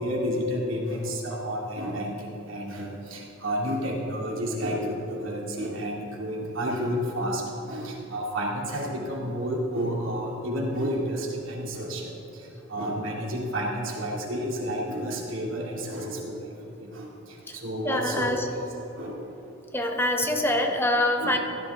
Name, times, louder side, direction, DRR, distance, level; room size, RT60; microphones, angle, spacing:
voice 1, 0.0-7.4 7.7-12.1 12.7-16.5 16.8-18.3 19.0-19.3 21.2-21.4, equal, 85° right, -3 dB, 2.4 m, -30 dB
voice 2, 17.8-18.4 19.7-21.4, left 1 dB, 10° left, 3 dB, 1.0 m, -25 dB
16.0 x 10.5 x 3.6 m, 3.0 s
head